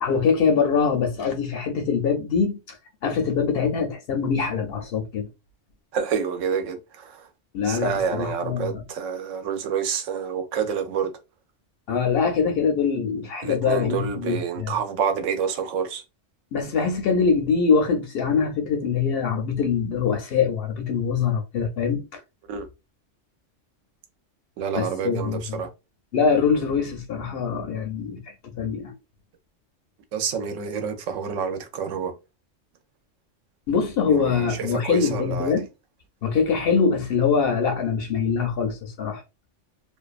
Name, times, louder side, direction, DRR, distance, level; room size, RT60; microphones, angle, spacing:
voice 1, 0.0-2.8 3.0-5.3 7.5-8.8 11.9-14.7 16.5-22.2 24.7-25.7 26.1-29.0 33.7-35.7 36.2-39.2, left 6 dB, 65° left, 0.7 m, -23 dB
voice 2, 5.9-7.3 7.6-11.1 13.4-16.0 22.5-22.7 24.6-25.7 30.1-32.1 34.1-35.5, right 7 dB, 90° right, 1.0 m, -28 dB
2.5 x 2.2 x 2.3 m
omnidirectional pair, 1.3 m